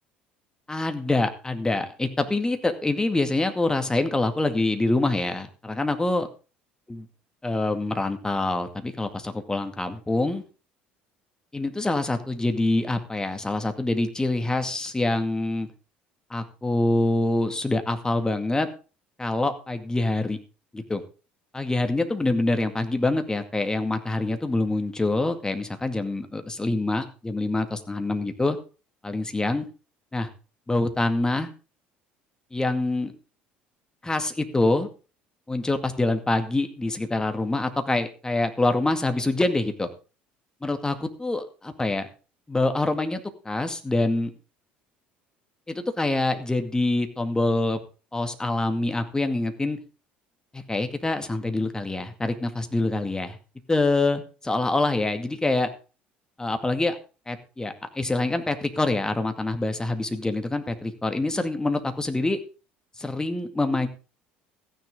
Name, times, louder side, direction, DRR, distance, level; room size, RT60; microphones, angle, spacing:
voice 1, 0.7-6.3 6.9-7.1 7.4-10.4 11.5-15.7 16.3-18.7 19.2-20.4 20.7-21.0 21.5-28.6 29.0-29.7 30.1-30.3 30.7-31.5 32.5-33.1 34.0-34.9 35.5-39.9 40.6-42.1 42.5-44.3 45.7-47.8 48.1-49.8 50.5-53.4 53.7-55.7 56.4-57.0 57.3-62.4 63.0-63.9, left 2 dB, 15° left, 7 dB, 2.2 m, -25 dB
14.5 x 10.0 x 3.9 m, 0.34 s
figure-of-eight pair, 60°, 5 cm